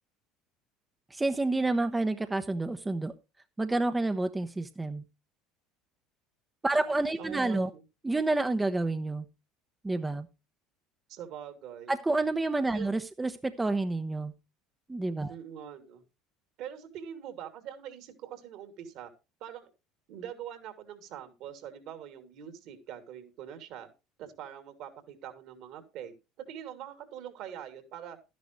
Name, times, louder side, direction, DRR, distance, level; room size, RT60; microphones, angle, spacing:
voice 1, 1.1-3.1 3.6-5.0 6.6-7.7 8.0-9.3 9.8-10.3 11.9-14.3 14.9-15.3, right 2 dB, 15° right, 8 dB, 1.0 m, -29 dB
voice 2, 6.8-7.8 11.1-11.9 12.7-12.9 15.3-16.0 16.6-19.1 19.4-19.7 20.1-23.9 24.2-28.2, right 9 dB, 60° right, 8 dB, 2.8 m, -44 dB
12.5 x 10.5 x 3.2 m, 0.27 s
hypercardioid pair, 75°, 0 cm